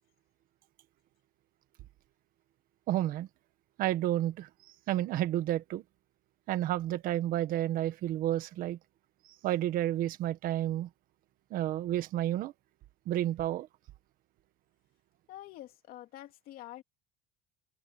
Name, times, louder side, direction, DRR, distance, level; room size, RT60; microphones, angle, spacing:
voice 1, 2.9-3.3 3.8-4.5 4.9-5.8 6.5-8.8 9.4-10.9 11.5-12.5 13.1-13.7, right 13 dB, 45° right, 1.5 m, -30 dB
voice 2, 15.3-16.8, left 14 dB, 50° left, 2.8 m, -47 dB
cardioid pair, 160°, 20 cm